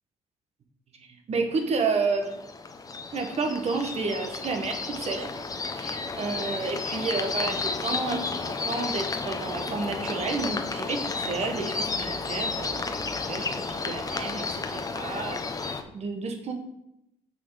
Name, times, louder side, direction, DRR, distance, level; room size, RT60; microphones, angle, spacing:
voice 1, 1.3-2.4 3.1-5.3 5.8-13.0 13.3-13.5 13.8-16.5, right 4 dB, 55° right, 4 dB, 1.5 m, -30 dB
sound 1, 1.9-15.8, left 4 dB, 25° left, 0.8 m, -32 dB
6.1 x 5.8 x 4.9 m, 0.82 s
cardioid pair, 80°, 13 cm